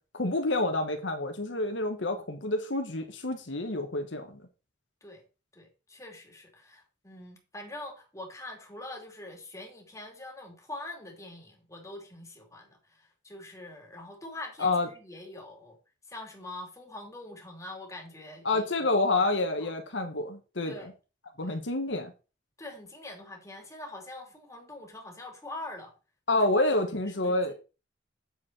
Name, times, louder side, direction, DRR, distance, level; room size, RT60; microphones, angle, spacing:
voice 1, 0.1-4.4 14.6-14.9 18.4-20.8 21.4-22.1 26.3-27.5, left 2 dB, 80° left, 1.5 m, -28 dB
voice 2, 5.5-15.8 16.1-18.9 19.1-19.3 19.6-19.7 20.6-20.9 21.4-21.6 22.6-25.9 26.3-26.7 27.1-27.5, left 2 dB, 15° left, 2.7 m, -44 dB
8.5 x 7.3 x 4.4 m
head